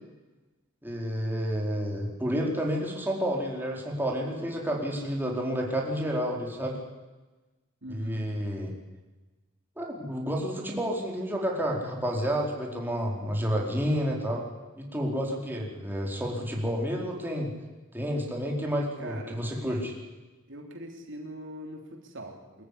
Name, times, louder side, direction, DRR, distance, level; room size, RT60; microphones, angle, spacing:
voice 1, 0.8-6.8 7.9-8.7 9.8-14.4 14.8-17.5 17.9-19.9, equal, 10° right, -1 dB, 4.4 m, -30 dB
voice 2, 7.8-8.3 19.0-19.4 20.5-22.6, right 1 dB, 65° right, 3 dB, 3.4 m, -42 dB
24.5 x 14.0 x 10.0 m, 1.2 s
head